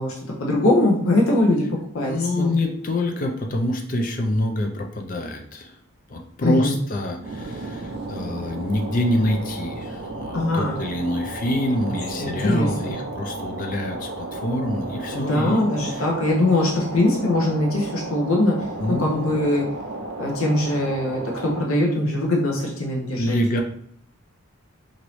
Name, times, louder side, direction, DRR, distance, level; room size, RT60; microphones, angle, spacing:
voice 1, 0.0-1.7 1.9-2.5 6.4-6.8 10.3-10.8 12.2-13.0 15.1-18.6 18.9-19.6 20.2-23.4, left 1 dB, 75° left, -2 dB, 0.7 m, -22 dB
voice 2, 2.0-5.7 6.1-15.6 15.9-16.1 18.8-19.5 23.2-23.6, left 1 dB, 40° left, 3 dB, 0.4 m, -26 dB
sound 1, 7.2-21.6, right 2 dB, 50° right, 0.4 m, -33 dB
3.0 x 2.6 x 3.0 m, 0.67 s
head